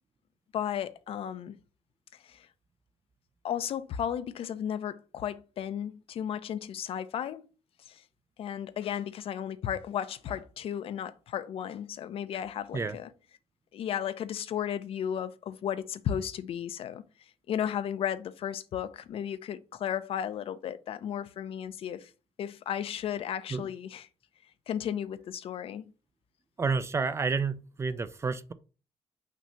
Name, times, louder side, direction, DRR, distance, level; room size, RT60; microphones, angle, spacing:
voice 1, 0.5-1.6 2.2-2.5 3.4-7.4 7.9-8.0 8.4-13.1 13.7-17.0 17.5-22.1 22.4-24.0 24.7-25.8, left 9 dB, 60° left, 0.6 m, -34 dB
voice 2, 26.6-28.5, right 4 dB, 25° right, 0.4 m, -30 dB
6.0 x 2.8 x 5.5 m
cardioid pair, 125°, 11 cm